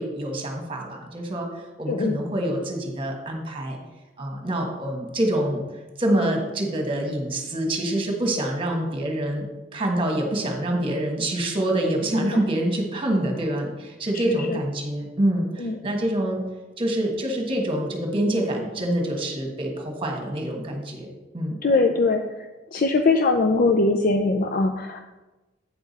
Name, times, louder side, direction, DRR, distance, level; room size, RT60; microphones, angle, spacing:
voice 1, 0.0-1.5 1.8-3.8 4.2-5.6 6.0-9.5 9.7-16.4 16.8-21.1 21.3-21.5, right 1 dB, 30° right, 2 dB, 1.4 m, -26 dB
voice 2, 1.9-2.2 12.1-12.4 14.1-14.6 15.6-15.8 21.6-22.2 22.7-25.0, left 3 dB, 50° left, 5 dB, 0.4 m, -21 dB
8.7 x 5.9 x 4.1 m, 1.1 s
head